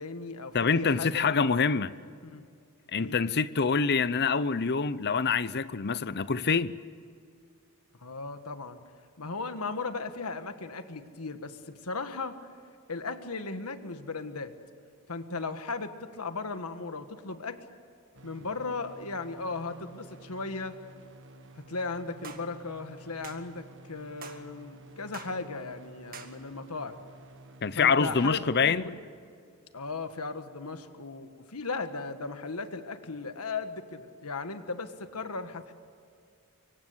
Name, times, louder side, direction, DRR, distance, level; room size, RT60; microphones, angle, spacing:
voice 1, 0.0-1.2 2.2-2.4 3.0-3.2 8.0-8.8 9.2-12.3 12.9-14.5 15.1-17.6 18.2-20.8 21.6-27.0 27.7-29.0 29.7-35.7, left 3 dB, 75° left, 1.6 m, -37 dB
voice 2, 0.5-1.9 2.9-6.8 27.6-28.8, left 5 dB, 50° left, 0.7 m, -26 dB
sound 1, 18.1-28.8, right 1 dB, 55° right, 1.5 m, -52 dB
sound 2, 22.2-22.5 23.2-23.4 24.2-24.4 25.1-25.4 26.1-26.3, right 6 dB, 40° right, 2.0 m, -45 dB
25.0 x 24.5 x 8.1 m
head